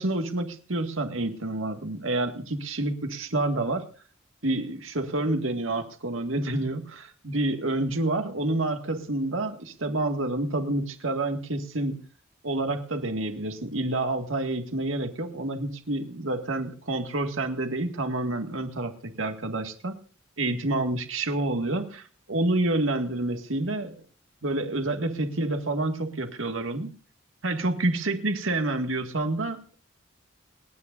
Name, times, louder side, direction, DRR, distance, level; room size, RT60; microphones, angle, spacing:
voice 1, 0.0-3.9 4.4-12.0 12.4-20.0 20.4-24.0 24.4-26.9 27.4-29.7, right 2 dB, 85° right, 5 dB, 1.9 m, -28 dB
28.5 x 9.9 x 2.6 m, 0.39 s
head